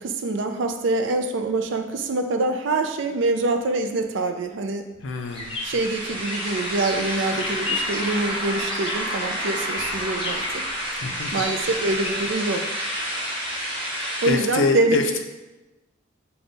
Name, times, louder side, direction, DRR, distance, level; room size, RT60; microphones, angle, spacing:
voice 1, 0.0-4.9 5.6-10.6 11.3-12.7 14.2-15.2, right 2 dB, 65° right, 6 dB, 0.4 m, -25 dB
voice 2, 5.0-5.6 11.0-11.3 14.2-15.2, left 3 dB, 70° left, 5 dB, 0.5 m, -25 dB
sound 1, 5.3-12.3, left 3 dB, 25° left, 0.6 m, -34 dB
sound 2, 5.3-14.3, equal, 25° right, 1.1 m, -29 dB
5.2 x 2.3 x 3.9 m, 1.1 s
head